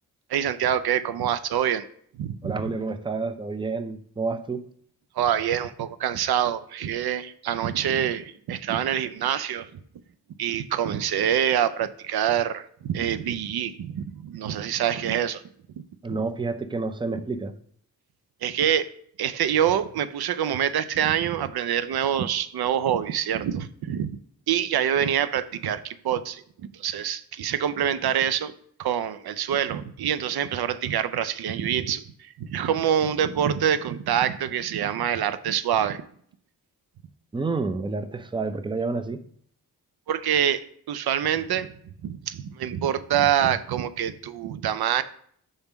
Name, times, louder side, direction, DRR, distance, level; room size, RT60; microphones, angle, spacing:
voice 1, 0.3-1.8 2.2-2.7 5.2-9.7 10.4-15.4 16.1-16.2 18.4-18.9 19.2-24.2 24.5-26.4 26.8-28.5 28.8-32.0 32.4-36.0 40.1-41.7 42.0-45.0, right 9 dB, 75° right, 13 dB, 0.5 m, -25 dB
voice 2, 2.4-4.6 16.0-17.5 37.3-39.2, right 3 dB, 15° right, 10 dB, 0.5 m, -29 dB
5.4 x 3.6 x 5.8 m, 0.62 s
cardioid pair, 55°, 38 cm